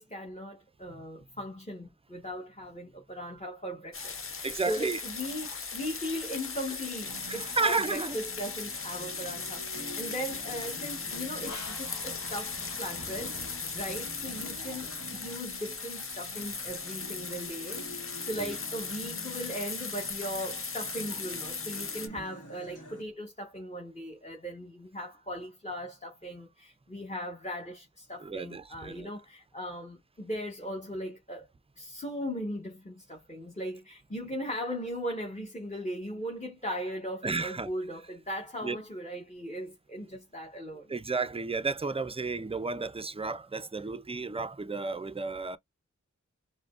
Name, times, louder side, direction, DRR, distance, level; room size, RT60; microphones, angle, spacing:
voice 1, 0.0-31.5 31.8-40.9, equal, 25° left, 1.2 m, -38 dB
sound 1, 3.9-22.1, left 4 dB, 45° left, 0.6 m, -38 dB
voice 2, 4.4-5.0 7.3-8.2 14.6-14.8 18.4-18.6 28.2-29.1 37.2-37.7 38.6-38.8 40.9-45.6, right 4 dB, 20° right, 0.4 m, -32 dB
Acoustic guitar, 7.0-23.0, equal, 75° left, 1.2 m, -48 dB
sound 2, 10.3-15.8, left 2 dB, 60° left, 1.4 m, -49 dB
5.0 x 2.1 x 2.4 m
wide cardioid pair, 55°, 30 cm